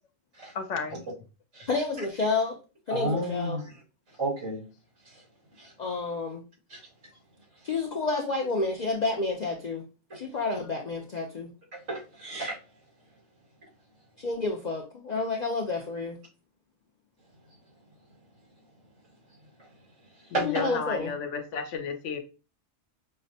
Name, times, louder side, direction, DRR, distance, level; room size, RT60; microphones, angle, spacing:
voice 1, 0.5-1.0 20.3-22.2, left 6 dB, 75° left, 7 dB, 0.9 m, -33 dB
voice 2, 1.7-2.5 2.9-3.6 5.8-6.4 7.6-9.8 10.1-11.5 14.2-16.2 20.4-21.1, left 3 dB, 55° left, 1 dB, 0.5 m, -29 dB
voice 3, 2.9-3.6 4.2-4.6 5.6-5.7 6.7-6.8 11.9-12.6 20.3-20.6, right 1 dB, 70° right, -5 dB, 2.2 m, -31 dB
5.6 x 2.1 x 2.7 m, 0.33 s
omnidirectional pair, 1.3 m